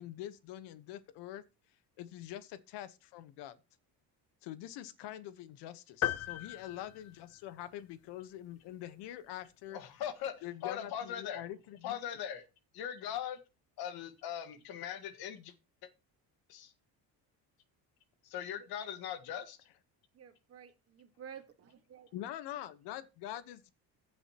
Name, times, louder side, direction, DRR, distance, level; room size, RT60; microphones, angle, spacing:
voice 1, 0.0-1.4 2.0-3.6 4.4-9.8 10.4-12.0 22.1-23.7, left 12 dB, 85° left, 1.2 m, -45 dB
sound 1, 6.0-7.8, left 12 dB, 40° left, 0.6 m, -37 dB
voice 2, 9.7-11.4 11.8-12.4 12.7-13.4 13.8-15.5 15.8-15.9 16.5-16.7 18.2-19.6, left 9 dB, 65° left, 1.6 m, -40 dB
voice 3, 20.1-22.1, right 8 dB, 35° right, 1.6 m, -52 dB
15.5 x 7.9 x 2.9 m
cardioid pair, 175°, 40 cm